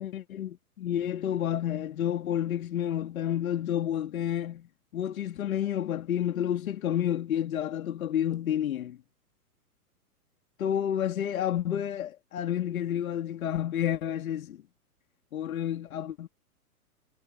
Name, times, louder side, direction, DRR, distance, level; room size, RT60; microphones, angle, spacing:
voice 1, 0.0-4.7 4.9-9.0 10.6-14.6 15.3-16.3, left 10 dB, 65° left, 2.2 m, -30 dB
hypercardioid pair, 120°, 46 cm